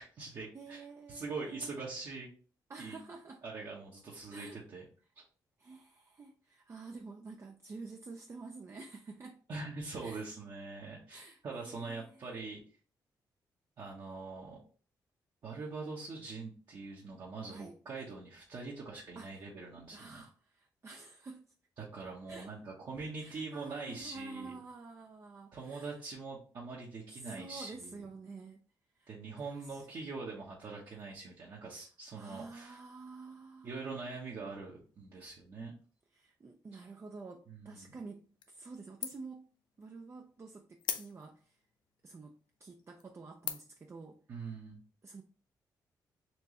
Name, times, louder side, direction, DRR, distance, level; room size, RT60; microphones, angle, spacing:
voice 1, 0.0-0.8 1.1-2.3 2.8-3.0 3.4-4.8 9.5-12.6 13.8-14.6 15.4-20.2 21.8-24.6 25.5-28.0 29.1-32.8 33.6-35.7 37.5-37.9 44.3-44.8, right 4 dB, 60° right, 1.2 m, -43 dB
voice 2, 0.5-1.7 2.7-3.4 4.3-4.6 5.6-9.4 10.0-10.3 11.1-12.3 17.5-17.8 19.2-19.4 19.9-21.5 22.3-22.6 23.2-26.0 27.1-28.6 28.9-29.1 29.4-29.9 31.7-31.9 32.1-34.2 36.1-39.5 39.8-41.6 42.0-44.2 45.0-45.2, right 3 dB, 35° right, 0.5 m, -49 dB
sound 1, 38.4-38.8 39.0-39.4 39.8-39.9 40.8-41.5 42.2-42.3 42.8-43.0 43.4-43.9, left 9 dB, 85° left, 0.4 m, -39 dB
4.4 x 2.7 x 3.2 m
cardioid pair, 70°, 8 cm